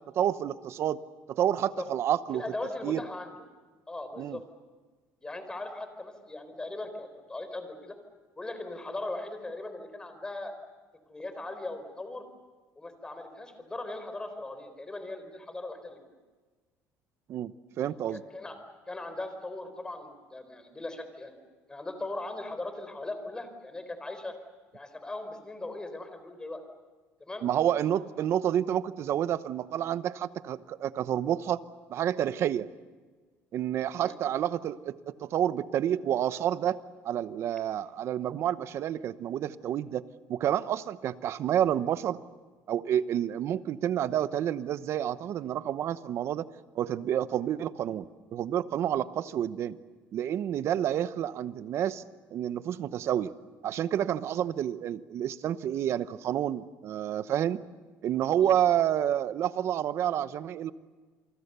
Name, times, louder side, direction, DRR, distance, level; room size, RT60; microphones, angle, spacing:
voice 1, 0.1-1.0 1.3-2.4 2.8-3.0 4.2-4.4 17.3-18.2 27.4-31.6 31.9-32.7 33.5-36.8 37.0-42.2 42.7-46.4 46.7-48.0 48.3-49.8 50.1-52.0 52.3-53.3 53.6-57.6 58.0-60.7, right 10 dB, 55° right, 14 dB, 0.9 m, -29 dB
voice 2, 2.3-3.4 3.9-4.4 5.2-8.0 8.4-10.5 11.1-12.2 12.8-16.0 18.1-18.6 18.9-21.3 21.7-24.3 24.7-26.6 27.2-27.4 27.9-28.0 34.0-34.2 49.0-49.1 58.4-58.6, left 2 dB, 15° left, 8 dB, 4.0 m, -39 dB
28.5 x 23.5 x 6.9 m, 1.3 s
cardioid pair, 125°, 6 cm